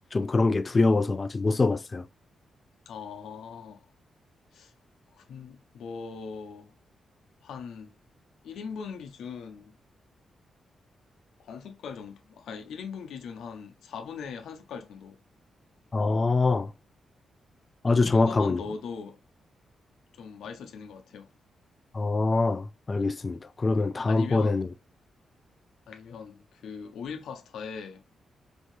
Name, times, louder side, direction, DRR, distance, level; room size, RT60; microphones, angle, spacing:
voice 1, 0.1-2.0 15.9-16.7 17.8-18.6 21.9-24.7, left 3 dB, 30° left, 0.3 m, -24 dB
voice 2, 2.9-3.9 4.5-4.7 5.1-6.7 7.4-7.9 8.4-9.7 11.4-15.2 18.1-19.2 20.1-21.3 24.1-24.7 25.9-28.0, left 6 dB, 90° left, 0.7 m, -40 dB
4.4 x 2.7 x 3.2 m
cardioid pair, 105°, 0 cm